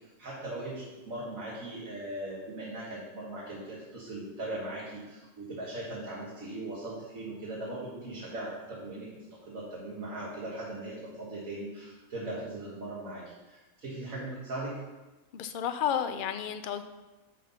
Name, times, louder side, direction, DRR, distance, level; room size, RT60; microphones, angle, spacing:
voice 1, 0.2-9.1 9.5-14.8, right 1 dB, 75° right, -7 dB, 2.0 m, -39 dB
voice 2, 15.3-16.8, left 9 dB, 60° left, 9 dB, 0.5 m, -31 dB
6.5 x 5.9 x 5.4 m, 1.1 s
omnidirectional pair, 1.4 m